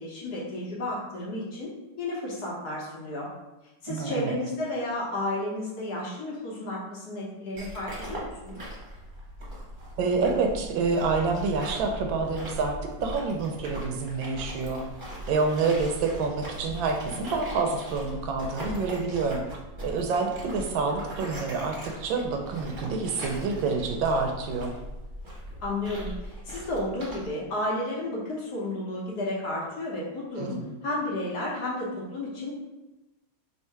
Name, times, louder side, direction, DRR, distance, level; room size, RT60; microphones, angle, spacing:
voice 1, 0.0-1.7 2.0-3.3 3.8-8.6 25.6-26.1 26.5-32.5, left 1 dB, 60° left, -5 dB, 1.3 m, -32 dB
voice 2, 3.9-4.4 10.0-12.8 13.0-14.8 15.3-19.4 19.8-24.7 30.4-30.7, right 4 dB, 75° right, 3 dB, 1.3 m, -27 dB
sound 1, 7.5-27.3, equal, 30° right, 1.0 m, -40 dB
3.6 x 2.8 x 4.4 m, 1.1 s
omnidirectional pair, 2.2 m